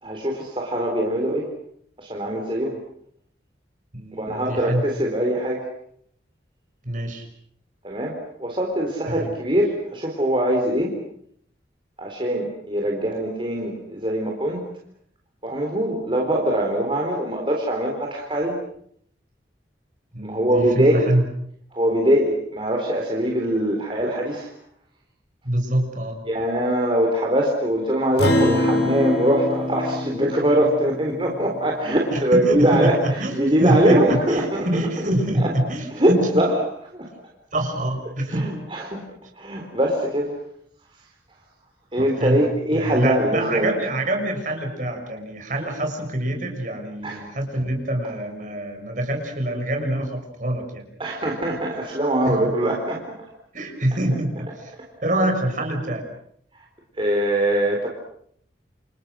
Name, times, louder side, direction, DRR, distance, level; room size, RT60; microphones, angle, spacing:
voice 1, 0.0-1.5 2.0-2.8 4.1-5.6 7.8-8.1 8.4-10.9 12.0-14.6 15.4-18.6 20.2-21.1 21.7-24.5 26.3-34.7 35.4-35.5 35.9-36.5 36.9-37.1 38.3-39.0 39.4-40.3 41.9-43.7 47.0-47.2 51.0-53.0 57.0-57.9, right 1 dB, 30° right, 0 dB, 4.2 m, -22 dB
voice 2, 3.9-4.9 6.8-7.3 9.1-9.3 20.1-21.2 25.4-26.2 32.1-36.3 37.5-38.5 42.0-42.4 42.7-50.8 52.2-52.5 53.5-54.7 55.0-56.1, right 1 dB, 45° right, 3 dB, 6.3 m, -25 dB
Acoustic guitar, 28.2-32.9, left 1 dB, 75° left, 6.8 m, -26 dB
29.0 x 28.5 x 6.4 m, 0.69 s
head